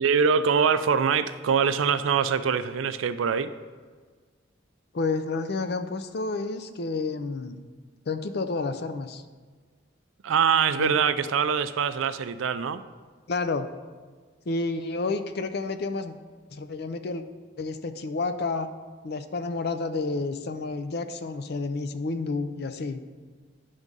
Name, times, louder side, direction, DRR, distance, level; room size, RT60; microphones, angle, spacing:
voice 1, 0.0-3.5 10.2-12.8, right 6 dB, 80° right, 12 dB, 0.4 m, -23 dB
voice 2, 4.9-7.6 8.1-9.2 10.8-11.0 13.3-13.7 14.5-16.1 16.5-17.2 17.6-18.7 19.0-23.0, left 3 dB, 55° left, 10 dB, 0.5 m, -30 dB
10.5 x 3.6 x 5.3 m, 1.5 s
head